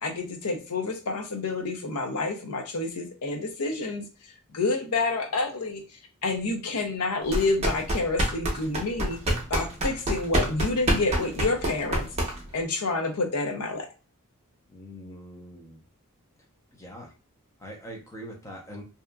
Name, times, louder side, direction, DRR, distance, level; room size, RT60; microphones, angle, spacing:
voice 1, 0.0-4.0 4.5-5.8 6.2-9.2 9.5-12.1 12.5-13.9, left 3 dB, 85° left, 5 dB, 0.6 m, -28 dB
sound 1, 7.2-12.6, right 1 dB, 30° right, 0.7 m, -27 dB
voice 2, 14.7-15.8 16.8-17.1 17.6-18.8, equal, 15° left, 1 dB, 0.6 m, -42 dB
2.8 x 2.3 x 2.2 m, 0.34 s
head